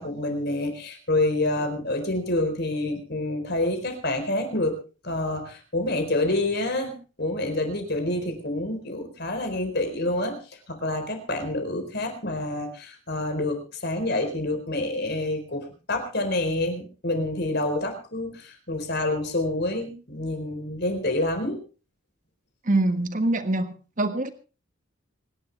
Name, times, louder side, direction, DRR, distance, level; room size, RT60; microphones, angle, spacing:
voice 1, 0.0-4.7 5.0-10.4 10.7-21.6, left 2 dB, 50° left, 6 dB, 4.3 m, -27 dB
voice 2, 22.7-24.3, right 2 dB, 40° right, 9 dB, 1.5 m, -24 dB
26.0 x 11.5 x 3.4 m, 0.35 s
head